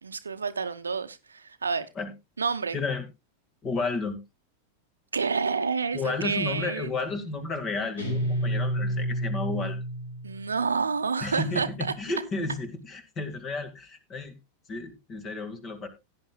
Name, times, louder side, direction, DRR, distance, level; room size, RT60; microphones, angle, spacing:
voice 1, 0.0-1.9 2.4-2.8 5.1-6.9 10.2-11.9, right 5 dB, 75° right, 11 dB, 0.9 m, -29 dB
voice 2, 2.7-3.1 3.6-4.2 5.9-9.8 11.2-14.4 14.7-15.9, left 3 dB, 30° left, 9 dB, 2.1 m, -32 dB
Guitar, 8.0-10.6, equal, 70° left, 5.8 m, -29 dB
16.5 x 9.7 x 2.3 m, 0.23 s
figure-of-eight pair, 90°, 0 cm